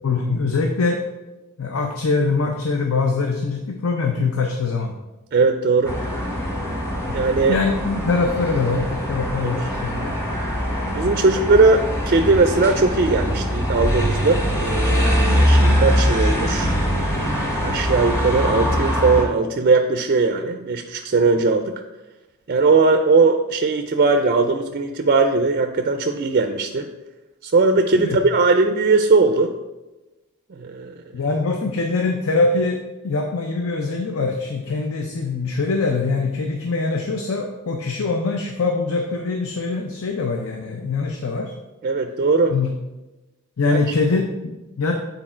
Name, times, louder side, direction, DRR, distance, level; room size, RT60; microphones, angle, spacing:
voice 1, 0.0-1.0 1.6-4.9 7.5-10.2 28.0-28.2 31.1-41.5 42.5-42.7 43.6-44.9, left 3 dB, 65° left, 3 dB, 0.6 m, -23 dB
voice 2, 5.3-6.0 7.1-7.6 9.4-9.5 10.9-16.8 17.6-21.8 22.5-26.9 27.4-29.5 30.5-31.0 41.8-42.5 43.6-43.8, right 3 dB, 40° right, 6 dB, 0.4 m, -19 dB
sound 1, 5.9-19.2, equal, 15° left, 1.3 m, -22 dB
8.6 x 3.9 x 4.4 m, 1.1 s
head